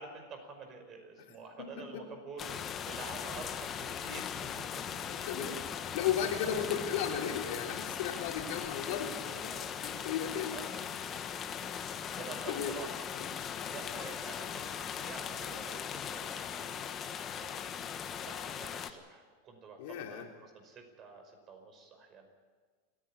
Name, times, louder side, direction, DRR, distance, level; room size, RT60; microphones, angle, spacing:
voice 1, 0.0-5.3 6.4-6.7 8.3-8.8 9.2-10.2 10.5-10.7 11.1-11.2 11.8-12.9 13.3-17.0 17.3-17.6 18.2-22.3, right 4 dB, 35° right, 5 dB, 5.3 m, -49 dB
voice 2, 1.6-2.0 5.1-9.5 9.8-10.6 12.5-12.7 13.1-13.3 13.9-14.0 19.8-20.3, left 9 dB, 65° left, 1 dB, 3.4 m, -35 dB
sound 1, 2.4-18.9, left 8 dB, 30° left, 1.4 m, -39 dB
28.5 x 10.5 x 10.0 m, 1.5 s
supercardioid pair, 130°, 0 cm